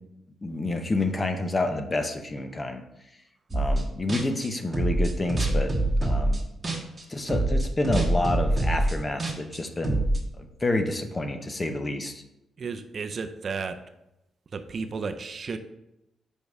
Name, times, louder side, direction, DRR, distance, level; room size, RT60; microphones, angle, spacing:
voice 1, 0.4-2.8 3.5-5.7 6.0-6.4 7.1-10.1 10.4-12.2, left 2 dB, 25° left, 6 dB, 0.8 m, -29 dB
sound 1, 3.5-3.8 4.1-7.0 7.3-10.2, right 1 dB, 20° right, 1.4 m, -24 dB
voice 2, 12.6-13.8 14.5-15.6, right 5 dB, 45° right, 8 dB, 0.5 m, -33 dB
5.4 x 5.2 x 4.7 m, 0.88 s
cardioid pair, 110°, 0 cm